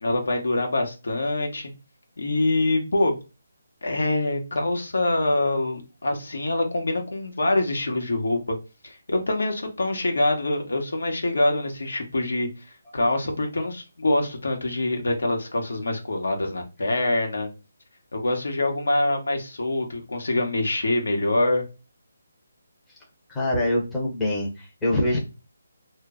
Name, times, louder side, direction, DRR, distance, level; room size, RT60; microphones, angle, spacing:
voice 1, 0.0-1.7 2.2-3.1 3.8-8.6 8.8-12.7 12.9-17.5 18.1-21.7, left 2 dB, 80° left, 3 dB, 0.9 m, -25 dB
voice 2, 23.3-25.2, left 1 dB, 5° left, -5 dB, 0.6 m, -24 dB
2.2 x 2.0 x 3.6 m, 0.30 s
hypercardioid pair, 170°, 0 cm